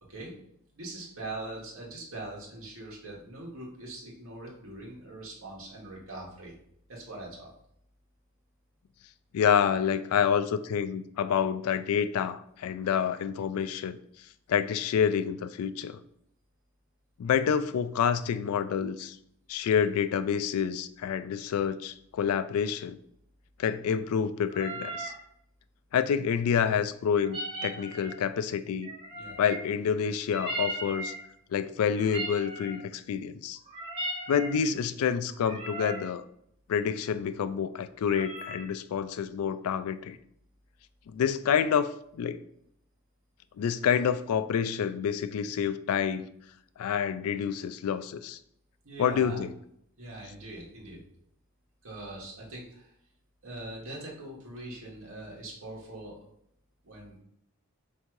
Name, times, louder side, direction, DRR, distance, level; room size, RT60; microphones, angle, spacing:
voice 1, 0.7-6.5 6.9-7.5 29.1-29.3 48.8-49.4 50.0-51.0 51.8-52.9 53.4-56.3 56.8-57.2, right 2 dB, 65° right, -3 dB, 1.2 m, -42 dB
voice 2, 9.3-14.0 14.5-16.0 17.2-19.2 19.5-23.0 23.6-25.1 25.9-28.9 29.4-31.1 31.5-33.6 34.3-36.2 36.7-40.2 41.1-42.4 43.6-46.3 46.8-48.4 49.0-49.5, left 7 dB, 75° left, 14 dB, 0.3 m, -28 dB
sound 1, 24.5-25.2 27.2-28.2 28.8-29.7 30.3-31.3 31.9-32.9 33.6-34.6 35.3-36.1 38.0-38.7, right 2 dB, 25° right, 0.9 m, -38 dB
3.6 x 2.7 x 4.5 m, 0.72 s
head